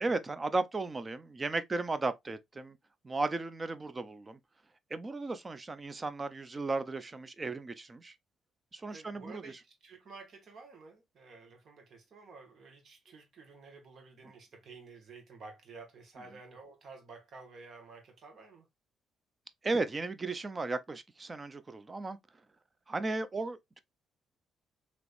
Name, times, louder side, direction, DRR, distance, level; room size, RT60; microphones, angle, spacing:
voice 1, 0.0-2.8 3.0-4.4 4.9-8.1 8.7-9.4 19.6-22.2 22.9-23.8, right 3 dB, 25° right, 0.5 m, -35 dB
voice 2, 8.9-18.7, right 4 dB, 60° right, 1.4 m, -52 dB
3.3 x 3.0 x 2.5 m
cardioid pair, 90°, 0 cm